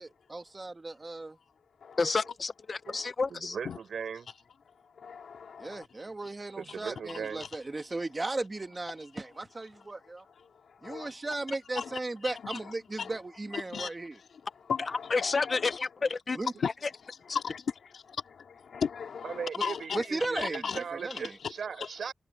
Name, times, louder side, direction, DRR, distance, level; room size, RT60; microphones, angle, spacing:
voice 1, 0.0-1.4 5.6-10.2 10.8-14.2 16.3-16.5 19.6-19.7 19.9-21.4, right 2 dB, 25° right, 1.7 m, -36 dB
voice 2, 2.0-3.6 14.8-16.4 16.6-16.7, left 4 dB, 35° left, 0.7 m, -30 dB
voice 3, 3.3-4.3 6.6-7.5 19.2-22.1, right 6 dB, 75° right, 4.4 m, -38 dB
voice 4, 5.0-5.9 7.4-7.5 10.4-10.5 10.8-11.1 11.8-12.6 13.0-13.1 13.7-13.9 14.7-15.8 16.6-16.7 17.3-20.1 20.4-20.8 21.1-21.2 21.8-21.9, left 6 dB, 90° left, 2.4 m, -36 dB
wide cardioid pair, 170°, 0 cm